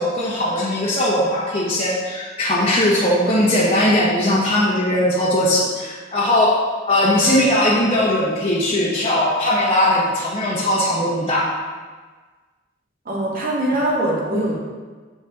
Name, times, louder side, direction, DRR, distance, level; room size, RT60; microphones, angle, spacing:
voice 1, 0.0-6.6 6.9-11.5 14.3-14.4, left 1 dB, 30° left, -8 dB, 1.5 m, -19 dB
voice 2, 13.1-14.6, right 1 dB, 50° right, -4 dB, 2.2 m, -22 dB
8.6 x 7.1 x 3.9 m, 1.4 s
head